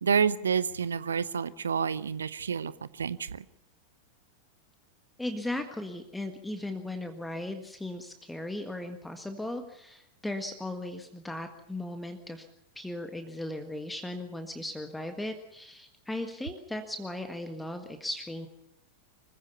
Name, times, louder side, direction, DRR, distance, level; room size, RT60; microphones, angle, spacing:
voice 1, 0.0-2.7 3.0-3.4, right 7 dB, 70° right, 18 dB, 0.7 m, -28 dB
voice 2, 5.2-12.4 12.7-18.5, left 1 dB, 5° left, 6 dB, 1.7 m, -37 dB
24.5 x 15.5 x 7.0 m, 0.80 s
figure-of-eight pair, 90°, 0 cm